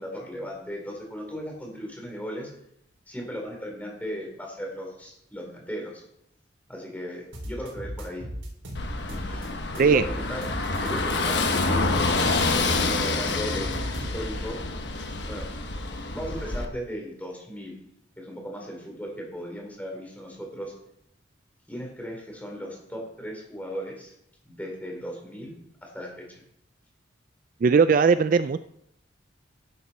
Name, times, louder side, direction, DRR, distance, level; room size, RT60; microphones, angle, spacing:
voice 1, 0.0-2.5 3.1-6.0 6.7-8.3 9.1-9.5 9.8-10.5 10.8-12.0 12.5-14.6 15.3-15.5 16.1-17.8 18.2-20.7 21.7-24.1 24.4-26.4, equal, 10° left, 0 dB, 3.5 m, -37 dB
sound 1, 7.3-9.5 9.7-11.2 11.5-14.5, equal, 75° right, 3.9 m, -37 dB
Car passing by / Engine, 8.7-16.6, left 3 dB, 60° left, 1.3 m, -27 dB
voice 2, 27.6-28.6, right 5 dB, 45° right, 13 dB, 0.3 m, -19 dB
12.5 x 11.0 x 4.2 m, 0.75 s
head